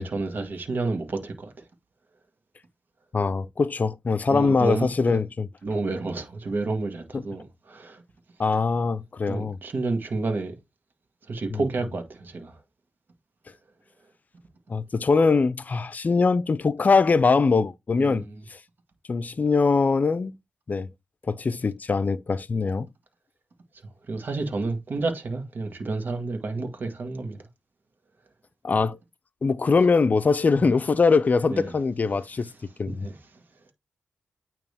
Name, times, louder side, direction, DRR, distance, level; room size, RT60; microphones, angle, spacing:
voice 1, 0.0-1.5 4.3-5.2 5.6-8.0 9.3-10.6 11.3-12.6 18.0-18.4 23.8-27.4 31.5-31.7 32.9-33.4, right 3 dB, 55° right, 1.7 m, -30 dB
voice 2, 3.1-5.5 7.1-7.2 8.4-9.6 11.5-11.6 14.7-18.2 18.5-18.6 19.1-20.4 20.7-20.9 21.3-22.9 28.6-29.0 29.4-32.5 32.8-33.1, left 4 dB, 45° left, 0.5 m, -22 dB
9.0 x 3.0 x 3.5 m
cardioid pair, 60°, 4 cm